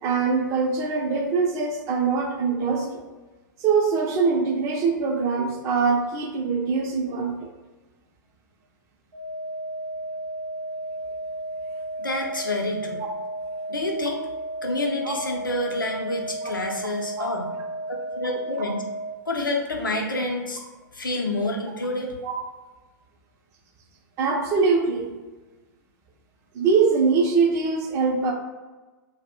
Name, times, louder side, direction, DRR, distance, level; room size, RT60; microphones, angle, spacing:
voice 1, 0.0-3.0 3.6-7.5 15.1-15.2 17.2-17.3 22.2-22.3 24.2-25.1 26.5-28.3, right 5 dB, 25° right, 2 dB, 0.4 m, -23 dB
sound 1, 9.1-19.1, right 1 dB, 80° right, 0.7 m, -33 dB
voice 2, 12.0-13.0 13.7-14.2 14.6-17.4 18.2-18.8 19.3-20.6 20.9-22.1, left 2 dB, 80° left, 0 dB, 0.5 m, -28 dB
2.3 x 2.0 x 3.5 m, 1.2 s
figure-of-eight pair, 105°, 11 cm